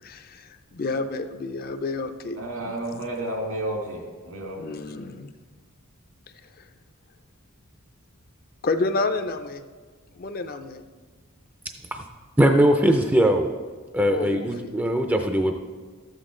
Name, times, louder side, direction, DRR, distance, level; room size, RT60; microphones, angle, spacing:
voice 1, 0.0-3.1 4.6-5.3 6.6-6.7 8.6-9.6 10.1-10.8 14.1-14.7, left 3 dB, 45° left, 8 dB, 0.5 m, -30 dB
voice 2, 2.4-4.6, right 1 dB, 80° right, -1 dB, 2.6 m, -31 dB
voice 3, 12.4-13.5 13.9-15.5, right 1 dB, 10° right, 4 dB, 0.4 m, -20 dB
12.5 x 8.2 x 3.8 m, 1.5 s
head